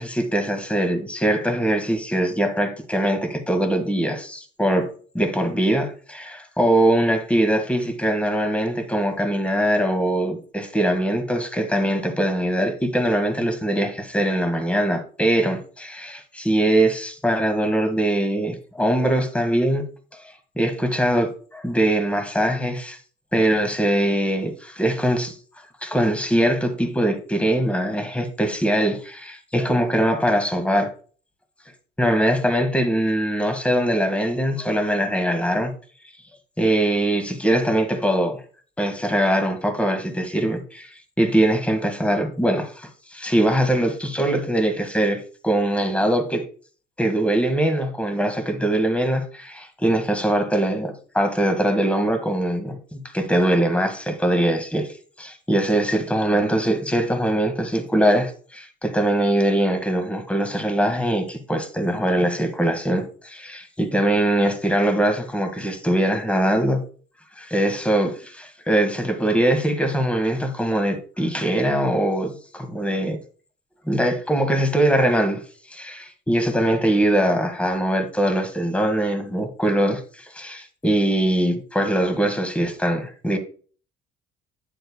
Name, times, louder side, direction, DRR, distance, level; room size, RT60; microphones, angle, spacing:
voice 1, 0.0-4.9 5.1-19.8 20.2-23.0 23.3-25.4 25.8-30.9 32.0-35.7 36.6-38.4 38.8-46.5 47.0-66.8 67.4-73.2 73.9-75.4 75.7-83.4, right 1 dB, 5° left, 1.7 m, -22 dB
9.1 x 7.8 x 2.2 m
cardioid pair, 110°, 17 cm